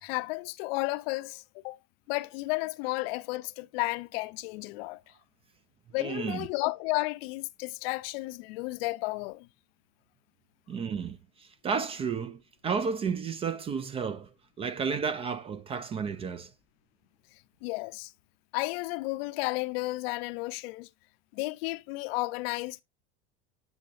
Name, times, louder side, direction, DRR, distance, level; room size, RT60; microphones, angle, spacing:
voice 1, 0.0-1.8 2.1-5.0 5.9-9.5 17.6-18.1 18.5-20.9 21.3-22.8, left 22 dB, 65° left, 0.6 m, -33 dB
voice 2, 6.0-6.5 10.7-14.3 14.6-16.5, right 6 dB, 20° right, 0.3 m, -32 dB
8.9 x 6.5 x 2.5 m
supercardioid pair, 140°, 31 cm